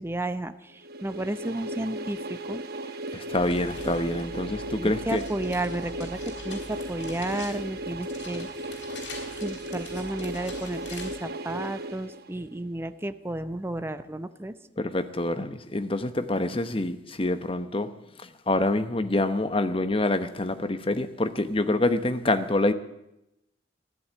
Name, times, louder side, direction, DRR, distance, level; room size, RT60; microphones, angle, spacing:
voice 1, 0.0-2.6 4.8-6.2 6.4-8.5 9.4-14.5, right 1 dB, 15° right, 11 dB, 0.6 m, -32 dB
sound 1, 0.8-12.6, right 1 dB, 55° right, 1.0 m, -36 dB
voice 2, 3.1-5.2 14.8-17.9 18.2-22.7, left 2 dB, 30° left, 10 dB, 0.9 m, -26 dB
sound 2, 3.3-11.2, left 2 dB, 85° left, 4.5 m, -43 dB
15.0 x 11.0 x 8.6 m, 0.86 s
head